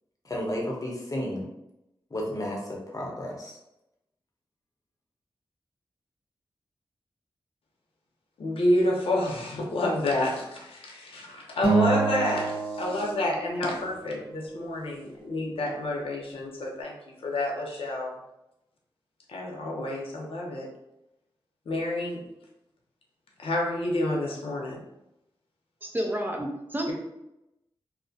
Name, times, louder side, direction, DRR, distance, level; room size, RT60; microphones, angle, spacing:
voice 1, 0.2-1.5 2.1-3.6, left 1 dB, 40° left, -2 dB, 0.8 m, -32 dB
voice 2, 8.4-16.9 17.2-18.2 19.3-20.7 21.7-22.2 23.4-24.8, left 1 dB, 85° left, -1 dB, 0.6 m, -29 dB
Acoustic guitar, 11.6-14.0, right 4 dB, 65° right, 0.9 m, -27 dB
voice 3, 25.8-26.9, equal, 20° right, 2 dB, 0.5 m, -30 dB
2.4 x 2.1 x 2.6 m, 0.87 s
cardioid pair, 55°, 9 cm